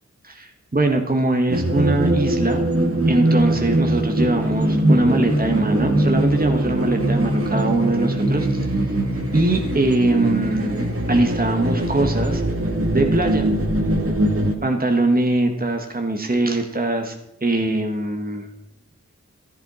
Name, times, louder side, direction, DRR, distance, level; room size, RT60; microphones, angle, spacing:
voice 1, 0.2-2.7 3.1-9.0 9.3-12.4 12.9-13.5 14.6-17.1 17.4-18.5, right 2 dB, 30° right, 4 dB, 1.5 m, -22 dB
sound 1, 1.5-14.5, right 1 dB, 50° right, 2.2 m, -21 dB
14.5 x 12.0 x 4.3 m, 0.83 s
wide cardioid pair, 55°, 29 cm